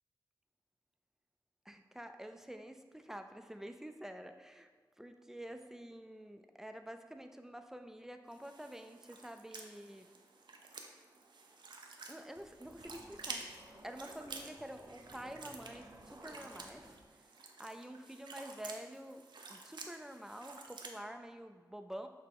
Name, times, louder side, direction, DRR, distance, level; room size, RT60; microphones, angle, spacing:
voice 1, 1.6-4.7 5.0-10.1 12.1-13.4 13.8-16.9 17.6-19.2 19.5-22.1, equal, 5° right, 7 dB, 0.4 m, -48 dB
sound 1, 8.3-21.0, right 3 dB, 75° right, 0.4 m, -51 dB
sound 2, 12.4-17.1, right 1 dB, 45° right, 0.8 m, -57 dB
6.0 x 2.2 x 3.5 m, 1.4 s
cardioid pair, 40°, 8 cm